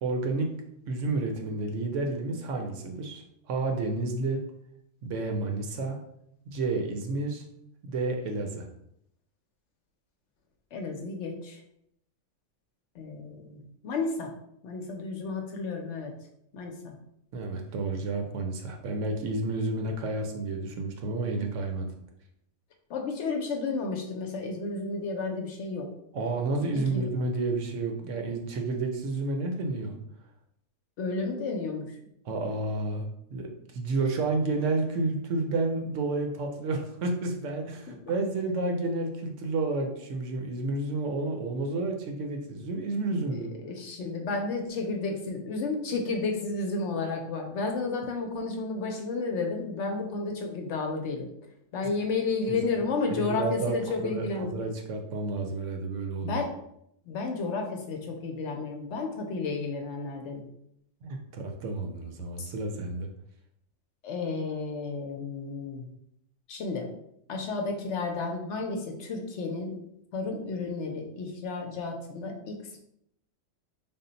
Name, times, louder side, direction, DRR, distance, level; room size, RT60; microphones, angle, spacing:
voice 1, 0.0-0.5 0.9-4.4 5.0-6.0 6.5-7.4 7.8-8.7 17.3-21.9 26.1-30.0 32.3-43.5 52.5-52.6 53.1-53.8 54.0-56.4 61.0-63.1, right 3 dB, 70° right, 3 dB, 0.9 m, -30 dB
voice 2, 10.7-11.6 12.9-14.3 14.6-16.1 16.5-17.0 22.9-25.9 26.7-27.1 31.0-32.0 37.9-38.0 43.3-51.3 51.7-54.5 56.2-56.5 57.1-60.5 62.4-62.5 64.0-65.9 66.5-66.9 67.3-69.8 70.1-72.8, left 3 dB, 70° left, 2 dB, 0.8 m, -32 dB
3.6 x 2.1 x 3.9 m, 0.75 s
omnidirectional pair, 1.4 m